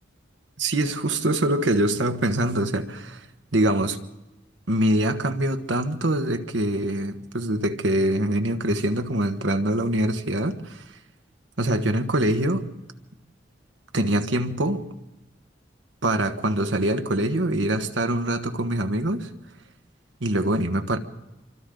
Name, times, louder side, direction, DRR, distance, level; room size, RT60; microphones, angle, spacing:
voice 1, 0.6-3.3 3.5-4.0 4.7-10.8 11.6-12.7 13.9-14.8 16.0-19.3 20.2-21.0, right 1 dB, 80° right, 1.4 m, -24 dB
26.5 x 25.0 x 3.9 m
head